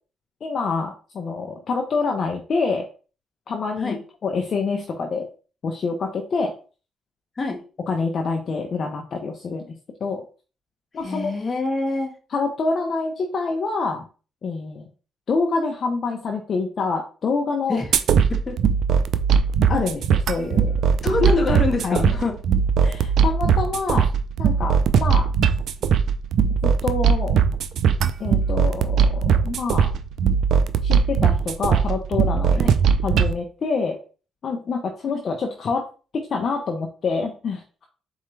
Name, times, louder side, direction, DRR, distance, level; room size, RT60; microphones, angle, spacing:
voice 1, 0.4-2.8 3.5-5.3 5.6-6.5 7.9-9.7 10.0-10.2 10.9-11.3 12.3-14.0 14.4-14.9 15.3-17.8 19.7-20.7 21.8-22.2 22.8-24.1 24.4-25.3 26.6-27.3 28.2-29.9 30.8-32.7 33.0-34.0 34.4-35.8 36.1-37.9, left 4 dB, 50° left, 2 dB, 0.7 m, -26 dB
voice 2, 11.0-12.1 17.7-17.9 18.3-18.6 21.0-22.4 32.6-32.7, left 3 dB, 30° left, 3 dB, 1.3 m, -24 dB
sound 1, 17.9-33.3, right 6 dB, 70° right, 0.4 m, -20 dB
4.3 x 3.6 x 3.2 m, 0.36 s
cardioid pair, 90°, 0 cm